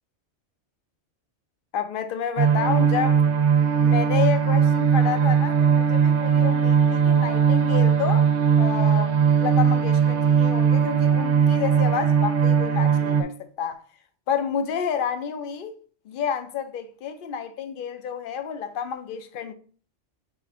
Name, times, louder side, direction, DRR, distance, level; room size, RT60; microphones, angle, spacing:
voice 1, 1.7-3.2 3.7-8.3 8.6-13.8 14.3-15.7 16.1-19.5, left 8 dB, 55° left, 0.7 m, -29 dB
sound 1, 2.4-13.2, right 7 dB, 75° right, 0.9 m, -19 dB
5.9 x 2.5 x 3.6 m
omnidirectional pair, 1.2 m